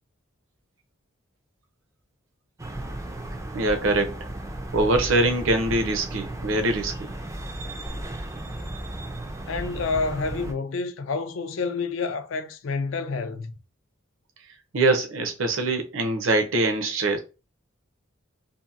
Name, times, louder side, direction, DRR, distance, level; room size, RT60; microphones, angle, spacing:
sound 1, 2.6-10.5, right 1 dB, 15° right, 0.3 m, -35 dB
voice 1, 3.5-4.2 4.7-6.9 14.7-17.2, right 2 dB, 70° right, 0.6 m, -23 dB
voice 2, 9.5-13.5, left 4 dB, 65° left, 0.4 m, -28 dB
2.8 x 2.5 x 2.4 m
head